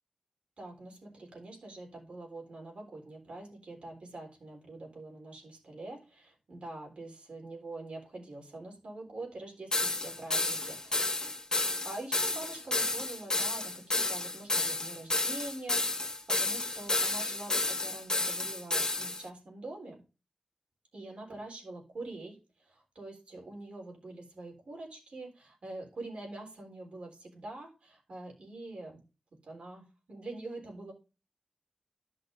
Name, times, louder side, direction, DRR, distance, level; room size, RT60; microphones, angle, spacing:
voice 1, 0.6-11.2 11.8-20.0 20.9-29.0 29.4-30.9, right 2 dB, 75° right, -1 dB, 3.8 m, -45 dB
sound 1, 9.7-19.2, left 2 dB, 35° left, 1.4 m, -31 dB
14.0 x 5.9 x 2.6 m, 0.31 s
wide cardioid pair, 90°, 2 cm